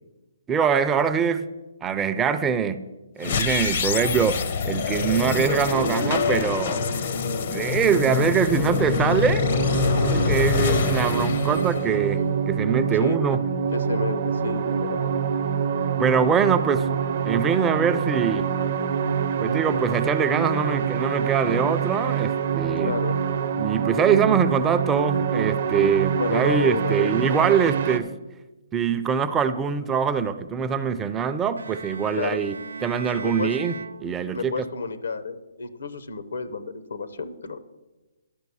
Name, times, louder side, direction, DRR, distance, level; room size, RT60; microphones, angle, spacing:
voice 1, 0.5-1.5 1.8-2.8 3.2-4.4 4.6-7.1 7.4-9.4 10.0-12.2 12.5-13.4 16.0-16.9 17.2-18.5 19.4-23.0 23.6-28.1 28.7-32.6 32.8-33.8 34.0-34.7, right 7 dB, 15° right, 10 dB, 0.5 m, -23 dB
sound 1, 3.2-12.4, left 5 dB, 50° left, 0.7 m, -25 dB
sound 2, 9.4-28.0, right 6 dB, 50° right, 0.7 m, -25 dB
voice 2, 13.0-13.4 13.7-15.1 22.8-23.2 26.2-27.1 32.2-32.4 33.1-33.5 34.3-37.6, left 4 dB, 75° left, 10 dB, 1.0 m, -30 dB
Bowed string instrument, 31.6-34.7, right 3 dB, 85° right, 0.5 m, -39 dB
11.5 x 6.0 x 7.1 m, 1.1 s
hypercardioid pair, 140°, 0 cm